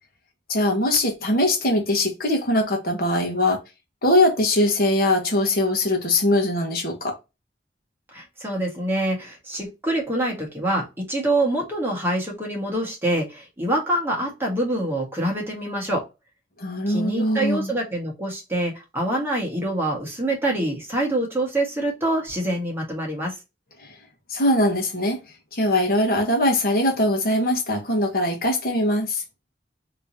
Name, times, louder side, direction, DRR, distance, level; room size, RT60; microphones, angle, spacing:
voice 1, 0.5-3.6 4.0-7.1 16.6-17.7 24.3-25.2 25.5-29.2, left 1 dB, 55° left, 1.2 m, -21 dB
voice 2, 8.1-16.0 16.9-23.4, right 1 dB, 15° right, 1.4 m, -25 dB
3.6 x 3.0 x 2.7 m
head